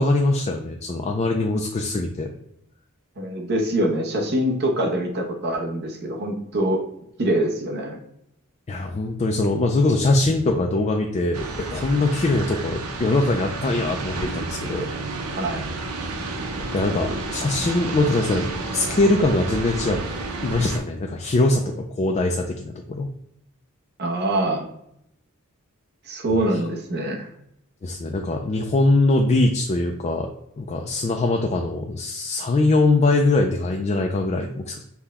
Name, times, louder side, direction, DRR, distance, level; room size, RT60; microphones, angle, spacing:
voice 1, 0.0-2.3 8.7-11.4 11.7-14.9 16.7-20.0 20.4-23.1 26.5-26.6 27.8-30.3 30.6-34.8, left 2 dB, 30° left, 2 dB, 0.3 m, -22 dB
voice 2, 3.2-6.8 7.2-8.0 15.4-15.6 24.0-24.7 26.1-27.3, right 1 dB, 50° right, 2 dB, 0.8 m, -24 dB
sound 1, 11.3-20.8, right 2 dB, 90° right, 0.7 m, -30 dB
5.7 x 2.2 x 3.5 m, 0.76 s
head